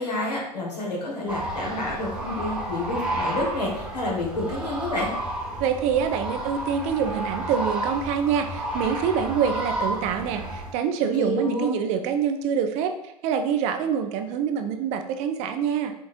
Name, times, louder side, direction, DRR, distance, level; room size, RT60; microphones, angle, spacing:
voice 1, 0.0-5.1 11.2-11.8, left 1 dB, 80° left, -3 dB, 1.7 m, -29 dB
sound 1, 1.3-10.7, right 1 dB, 5° right, 0.8 m, -31 dB
voice 2, 5.6-15.9, right 7 dB, 35° right, 7 dB, 0.4 m, -25 dB
5.1 x 3.8 x 2.5 m, 0.80 s
figure-of-eight pair, 95°, 21 cm